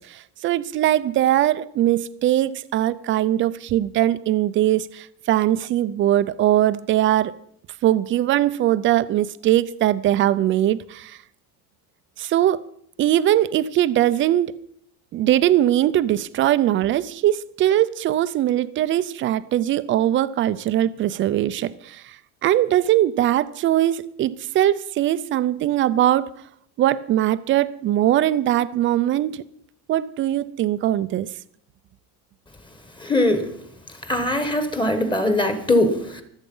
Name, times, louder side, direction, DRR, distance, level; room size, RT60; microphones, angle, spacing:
voice 1, 0.0-7.3 7.8-11.2 12.2-12.7 13.0-14.6 15.1-22.2 22.4-26.3 26.8-29.4 29.9-31.3, right 12 dB, 30° right, 0.5 m, -21 dB
voice 2, 33.0-33.4 34.1-36.2, left 1 dB, 10° left, 1.3 m, -21 dB
24.5 x 8.2 x 5.5 m
cardioid pair, 170°, 41 cm